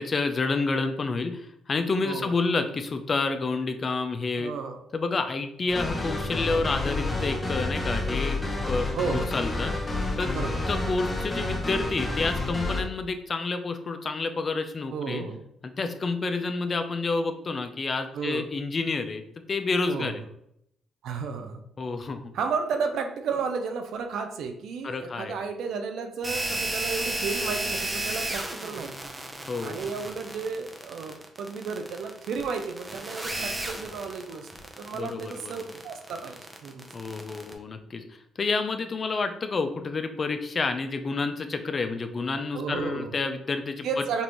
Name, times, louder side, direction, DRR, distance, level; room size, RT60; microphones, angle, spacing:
voice 1, 0.0-4.5 4.9-8.4 8.7-9.7 10.2-10.3 10.7-15.3 15.6-19.2 19.5-20.2 21.8-22.3 24.8-25.4 29.5-29.8 34.9-35.6 36.9-44.2, left 3 dB, 40° left, 7 dB, 0.5 m, -29 dB
voice 2, 4.4-4.8 9.0-9.3 10.3-10.6 14.9-15.4 18.1-18.5 19.9-20.2 21.0-21.6 22.3-28.9 29.6-34.5 34.8-36.8 42.5-43.1 43.8-44.2, right 5 dB, 75° right, 5 dB, 0.6 m, -33 dB
sound 1, 5.7-12.8, left 2 dB, 20° left, 0.9 m, -29 dB
sound 2, 26.2-37.5, right 2 dB, 20° right, 0.7 m, -33 dB
5.3 x 2.5 x 3.0 m, 0.74 s
cardioid pair, 90°, 0 cm